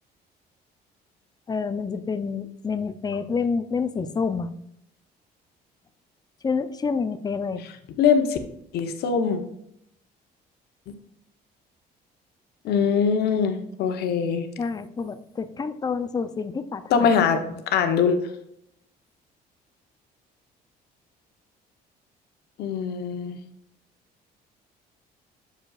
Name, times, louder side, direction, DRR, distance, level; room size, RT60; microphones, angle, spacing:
voice 1, 1.5-4.5 6.4-7.6 14.6-17.2 17.4-17.6, left 5 dB, 25° left, 12 dB, 0.5 m, -28 dB
voice 2, 8.0-8.4 8.7-9.4 12.6-14.5 16.9-17.4 17.7-18.2 22.6-23.4, left 6 dB, 75° left, 7 dB, 0.9 m, -22 dB
7.8 x 6.4 x 2.4 m, 0.75 s
cardioid pair, 110°, 17 cm